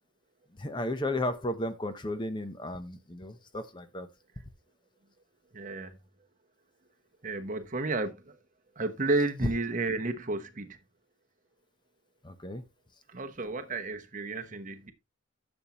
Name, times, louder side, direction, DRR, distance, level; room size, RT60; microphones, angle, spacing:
voice 1, 0.6-4.1 12.2-12.6, left 1 dB, 20° left, 0.7 m, -34 dB
voice 2, 5.5-6.0 7.2-8.4 8.8-10.8 13.1-14.9, right 2 dB, 40° right, 1.0 m, -32 dB
11.0 x 7.1 x 3.0 m
head